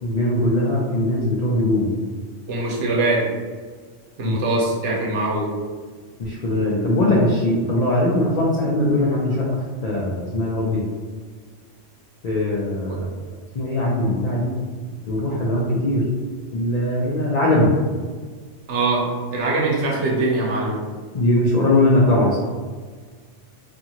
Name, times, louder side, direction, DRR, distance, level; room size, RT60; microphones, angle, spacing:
voice 1, 0.0-1.9 4.2-4.3 6.2-9.6 9.8-10.8 12.2-13.1 13.5-14.5 15.1-16.0 16.5-17.7 21.1-22.4, left 1 dB, 75° left, -5 dB, 0.3 m, -20 dB
voice 2, 2.5-3.3 4.2-5.5 18.7-20.8, right 2 dB, 70° right, -3 dB, 1.0 m, -22 dB
2.6 x 2.5 x 2.8 m, 1.5 s
omnidirectional pair, 1.3 m